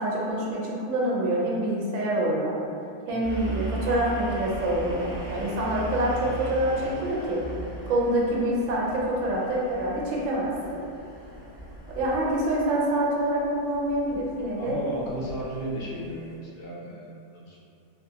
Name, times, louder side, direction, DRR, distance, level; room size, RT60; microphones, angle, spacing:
voice 1, 0.0-2.6 3.1-7.4 7.9-10.8 11.9-15.2, right 1 dB, 65° right, -4 dB, 0.8 m, -26 dB
sound 1, 3.2-16.4, right 1 dB, 25° left, 0.6 m, -39 dB
voice 2, 14.6-17.6, equal, 85° left, -5 dB, 1.2 m, -35 dB
2.7 x 2.4 x 2.7 m, 2.4 s
omnidirectional pair, 1.7 m